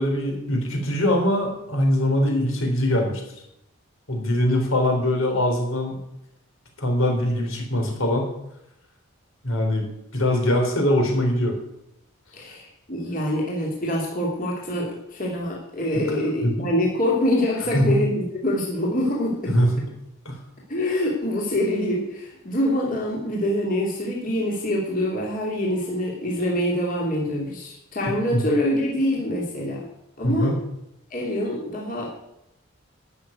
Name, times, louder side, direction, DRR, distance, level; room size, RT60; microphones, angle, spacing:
voice 1, 0.0-3.2 4.1-6.0 6.8-8.3 9.4-9.9 10.1-11.5 15.9-16.0 16.4-16.7 17.7-18.0 19.5-19.8 20.3-20.4 28.3-28.4 30.2-30.6, left 1 dB, 70° left, 2 dB, 3.7 m, -22 dB
voice 2, 12.3-19.5 20.7-29.8 30.2-30.6 31.1-32.3, left 1 dB, 40° left, -3 dB, 2.8 m, -25 dB
12.0 x 6.5 x 9.4 m, 0.82 s
head